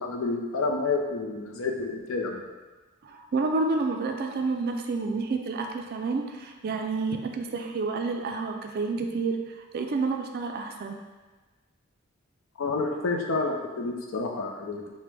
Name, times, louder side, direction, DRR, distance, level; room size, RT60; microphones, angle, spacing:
voice 1, 0.0-2.5 12.6-14.9, left 3 dB, 70° left, 1 dB, 0.5 m, -29 dB
voice 2, 3.0-9.4 9.7-11.0, right 3 dB, 45° right, 4 dB, 0.3 m, -29 dB
4.9 x 2.1 x 3.3 m, 1.3 s
head